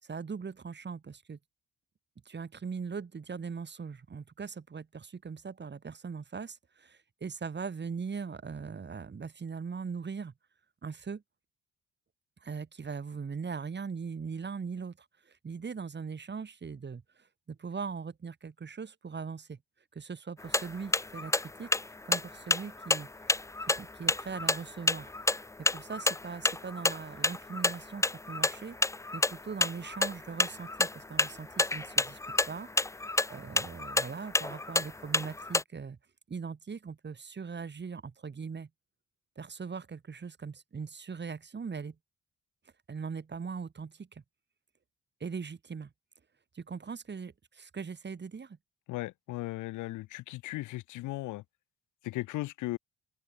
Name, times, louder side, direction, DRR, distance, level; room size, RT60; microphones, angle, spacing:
voice 1, 0.0-1.4 2.3-10.3 10.8-11.2 12.4-15.0 15.3-19.6 19.9-23.1 23.8-25.1 25.6-28.8 29.1-32.2 32.5-32.7 33.3-36.0 36.3-38.7 39.4-42.0 42.9-44.2 45.2-45.9 46.5-48.6, right 5 dB, 35° right, 4.1 m, -40 dB
sound 1, 20.4-35.6, left 2 dB, 10° left, 0.6 m, -29 dB
voice 2, 48.9-51.4 52.0-52.8, left 18 dB, 85° left, 0.6 m, -37 dB
open air
cardioid pair, 90°, 30 cm